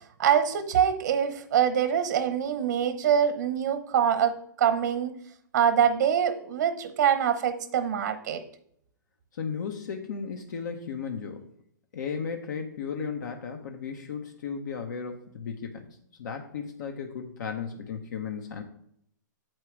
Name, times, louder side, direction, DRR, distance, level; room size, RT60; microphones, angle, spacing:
voice 1, 0.2-5.1 5.5-8.4, right 8 dB, 65° right, 10 dB, 0.9 m, -24 dB
voice 2, 9.3-11.5 11.9-18.6, left 6 dB, 65° left, 4 dB, 0.8 m, -35 dB
7.6 x 4.6 x 4.7 m, 0.70 s
hypercardioid pair, 125°, 11 cm